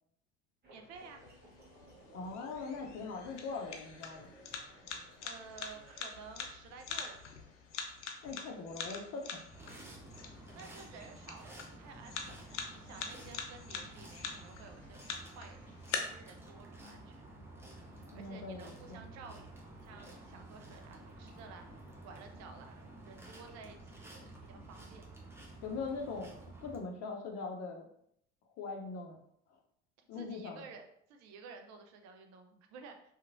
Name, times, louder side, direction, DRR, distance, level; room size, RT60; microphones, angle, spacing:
sound 1, 0.6-6.1, equal, 30° right, 1.0 m, -59 dB
voice 1, 0.7-1.2 5.2-7.2 10.5-17.2 18.1-19.5 19.8-25.0 30.1-33.0, right 5 dB, 50° right, 5 dB, 0.5 m, -53 dB
sound 2, 1.0-16.0, left 6 dB, 85° left, 0.5 m, -45 dB
voice 2, 2.1-4.3 8.2-9.5 10.5-10.6 18.1-19.0 25.6-27.9 28.6-29.2 30.1-30.6, left 4 dB, 45° left, 2 dB, 0.6 m, -41 dB
sound 3, 9.5-26.8, right 2 dB, 5° right, 0.7 m, -52 dB
2.9 x 2.4 x 2.5 m, 0.72 s
hypercardioid pair, 65°, 35 cm